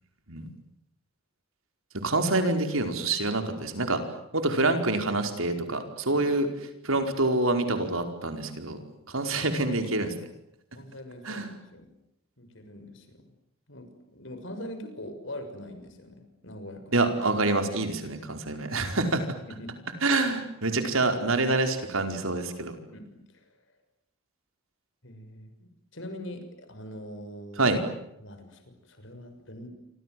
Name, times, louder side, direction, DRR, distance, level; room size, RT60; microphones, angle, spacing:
voice 1, 1.9-4.0 4.3-6.5 6.8-10.1 11.2-11.5 16.9-19.2 20.0-22.7 27.6-27.8, right 2 dB, 85° right, 6 dB, 5.0 m, -26 dB
voice 2, 10.7-11.9 12.4-13.2 13.7-16.8 18.0-18.1 19.5-19.8 22.9-23.5 25.0-27.8 28.2-29.7, left 1 dB, 65° left, 8 dB, 6.5 m, -43 dB
28.5 x 26.0 x 7.9 m, 0.79 s
head